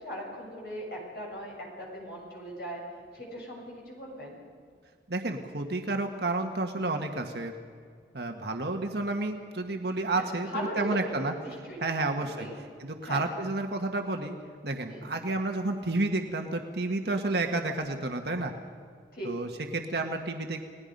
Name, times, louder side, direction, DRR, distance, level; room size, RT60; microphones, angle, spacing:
voice 1, 0.0-1.5 1.8-2.8 3.1-4.3 10.1-12.5 13.0-13.2 14.9-15.1 17.0-17.2 19.1-19.3, equal, 55° left, -2 dB, 7.3 m, -39 dB
voice 2, 5.1-7.5 8.1-11.3 11.8-12.5 12.8-14.3 14.6-18.5 19.2-20.6, right 2 dB, 65° right, 3 dB, 1.5 m, -31 dB
30.0 x 19.0 x 5.4 m, 2.1 s
head